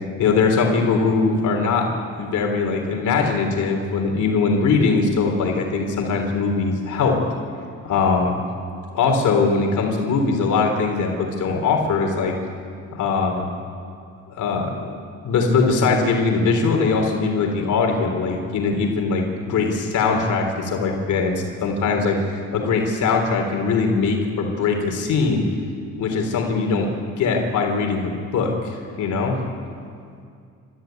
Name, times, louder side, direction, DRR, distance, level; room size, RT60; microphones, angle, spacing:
voice 1, 0.2-1.9 2.2-7.2 7.8-8.4 8.9-12.3 12.9-13.5 14.4-14.9 15.2-25.4 26.0-26.9 27.2-29.4, left 4 dB, 75° left, 3 dB, 3.6 m, -21 dB
27.5 x 14.0 x 9.4 m, 2.4 s
cardioid pair, 90°, 30 cm